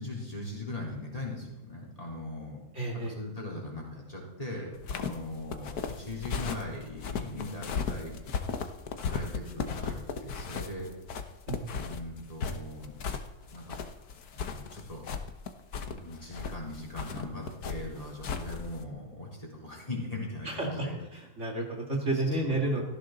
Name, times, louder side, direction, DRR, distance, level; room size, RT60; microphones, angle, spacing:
voice 1, 0.0-2.6 3.0-8.1 9.1-10.9 11.7-12.9 13.5-13.8 14.3-15.1 15.8-21.0 22.1-22.8, left 1 dB, 20° left, -2 dB, 3.9 m, -40 dB
voice 2, 2.7-3.2 11.5-11.6 20.4-20.9 21.1-22.8, right 2 dB, 45° right, -1 dB, 2.7 m, -31 dB
sound 1, 4.8-18.8, left 5 dB, 70° left, 1.6 m, -36 dB
17.5 x 14.5 x 3.9 m, 1.1 s
omnidirectional pair, 1.7 m